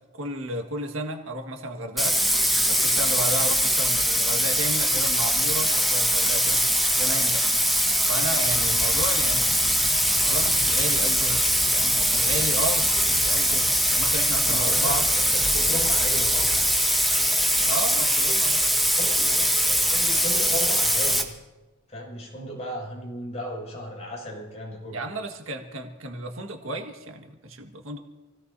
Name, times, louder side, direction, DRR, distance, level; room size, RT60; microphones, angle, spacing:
voice 1, 0.1-2.2 2.6-6.6 6.9-7.5 8.1-9.5 10.2-15.1 17.6-18.6 24.9-28.0, right 1 dB, 75° right, 3 dB, 1.8 m, -33 dB
Bathtub (filling or washing), 2.0-21.2, equal, ahead, 1.5 m, -22 dB
Aircraft, 8.4-16.7, left 2 dB, 50° left, 0.8 m, -40 dB
voice 2, 14.4-16.5 19.0-21.3 21.9-25.0, equal, 35° left, -3 dB, 6.6 m, -35 dB
28.0 x 17.5 x 2.8 m, 1.1 s
head